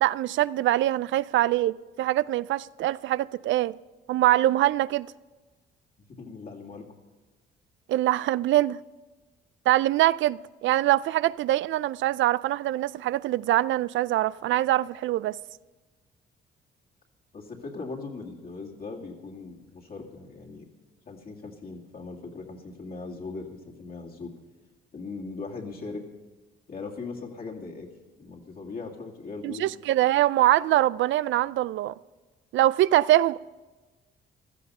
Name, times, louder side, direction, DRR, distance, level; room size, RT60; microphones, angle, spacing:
voice 1, 0.0-3.8 4.1-5.1 7.9-8.8 9.7-15.4 29.4-31.9 32.5-33.4, right 14 dB, 75° right, 0.4 m, -23 dB
voice 2, 6.2-6.9 17.3-20.7 21.1-24.4 24.9-26.1 26.7-27.9 28.2-29.7, left 3 dB, 45° left, 2.2 m, -39 dB
16.0 x 13.0 x 5.5 m
cardioid pair, 90°, 20 cm